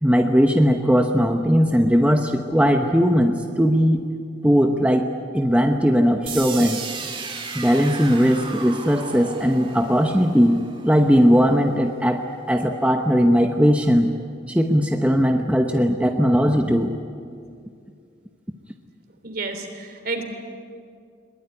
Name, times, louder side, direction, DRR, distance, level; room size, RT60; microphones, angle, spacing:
voice 1, 0.0-4.0 4.4-5.1 5.3-6.9 7.5-12.2 12.5-14.1 14.5-16.9, equal, 5° right, 3 dB, 1.0 m, -18 dB
sound 1, 6.3-12.2, right 5 dB, 30° right, 2.5 m, -35 dB
voice 2, 19.2-20.2, right 3 dB, 55° right, 6 dB, 3.2 m, -30 dB
22.0 x 20.0 x 9.9 m, 2.3 s
head